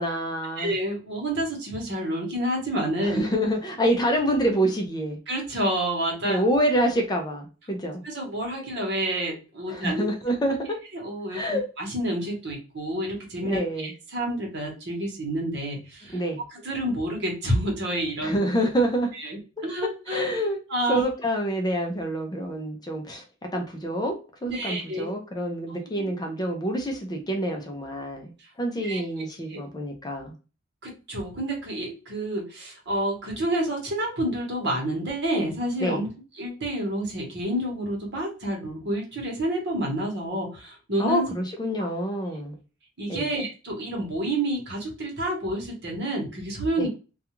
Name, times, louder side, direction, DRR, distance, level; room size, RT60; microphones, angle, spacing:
voice 1, 0.0-0.7 3.0-5.2 6.2-8.0 9.7-10.8 11.3-11.6 13.4-13.9 16.1-16.4 18.2-19.1 20.1-20.6 20.9-23.2 23.5-24.2 24.4-28.3 28.6-30.3 35.8-36.0 41.0-42.6 43.1-43.3 46.8-46.9, right 1 dB, 20° left, 3 dB, 0.5 m, -27 dB
voice 2, 0.6-3.2 5.3-6.4 8.0-10.1 10.9-16.2 16.5-18.4 19.1-20.4 20.7-21.0 24.4-25.1 26.0-26.1 28.4-28.5 28.8-29.6 30.8-36.1 36.4-41.3 41.8-41.9 43.0-46.9, right 1 dB, 55° right, 0 dB, 1.0 m, -29 dB
2.3 x 2.3 x 2.9 m, 0.32 s
head